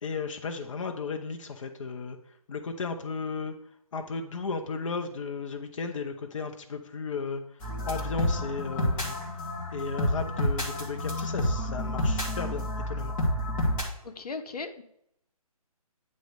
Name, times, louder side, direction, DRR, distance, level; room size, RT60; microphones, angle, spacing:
voice 1, 0.0-2.2 2.5-3.6 3.9-9.2 9.7-13.1, left 4 dB, 55° left, 5 dB, 0.7 m, -35 dB
sound 1, 7.6-13.8, left 1 dB, 20° left, 1.5 m, -29 dB
voice 2, 14.0-14.8, left 4 dB, 80° left, 9 dB, 1.0 m, -37 dB
9.2 x 3.2 x 6.5 m, 0.76 s
hypercardioid pair, 160°, 19 cm